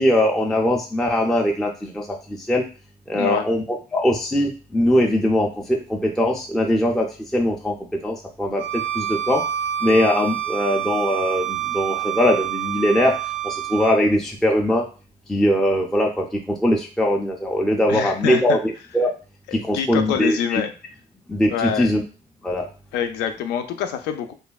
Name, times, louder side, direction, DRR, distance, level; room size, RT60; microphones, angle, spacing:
voice 1, 0.0-2.6 3.1-3.6 3.9-7.8 8.0-9.4 9.8-13.2 13.4-14.9 15.3-18.6 18.9-19.1 19.5-20.6 21.3-22.0 22.4-22.7, left 1 dB, ahead, 0 dB, 0.3 m, -21 dB
voice 2, 3.1-3.4 17.9-18.6 19.5-20.7 21.5-21.9 22.9-24.3, left 8 dB, 85° left, 8 dB, 0.4 m, -26 dB
Bowed string instrument, 8.6-14.0, right 12 dB, 75° right, 0.5 m, -27 dB
3.2 x 2.2 x 2.3 m, 0.36 s
cardioid pair, 110°, 17 cm